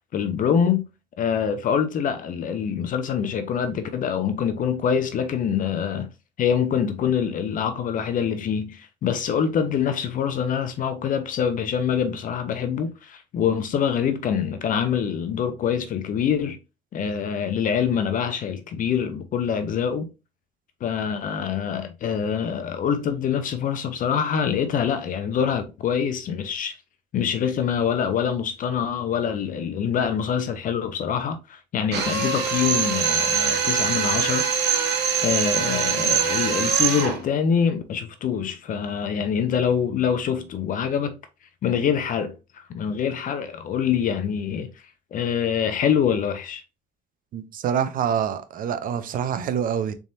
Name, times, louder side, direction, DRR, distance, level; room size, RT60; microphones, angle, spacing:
voice 1, 0.1-0.9 1.2-6.1 6.4-16.6 16.9-20.1 20.8-26.8 27.1-34.5 35.2-41.2 41.6-44.7 45.1-46.6, left 7 dB, 50° left, 0.6 m, -25 dB
Drill, 31.9-37.2, right 7 dB, 80° right, 1.2 m, -23 dB
voice 2, 47.3-49.9, right 8 dB, 55° right, 0.6 m, -26 dB
4.1 x 3.5 x 2.7 m
cardioid pair, 110°, 17 cm